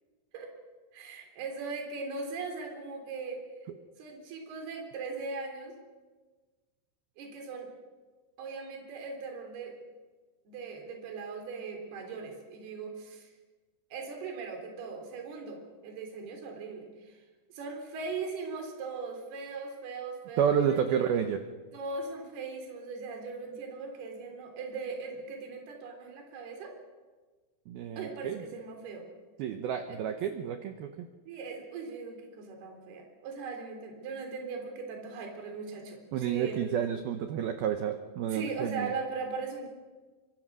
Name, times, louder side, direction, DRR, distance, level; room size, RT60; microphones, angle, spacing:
voice 1, 0.9-3.4 4.0-5.7 7.2-7.7 8.4-9.8 10.5-13.3 13.9-17.2 17.5-21.1 21.7-26.7 28.0-29.1 29.9-30.0 31.3-36.8 38.3-39.7, right 4 dB, 55° right, 2 dB, 5.3 m, -39 dB
voice 2, 20.4-21.4 27.7-28.4 29.4-31.1 36.1-38.9, right 8 dB, 85° right, 7 dB, 2.1 m, -30 dB
25.0 x 24.0 x 6.2 m, 1.3 s
omnidirectional pair, 5.9 m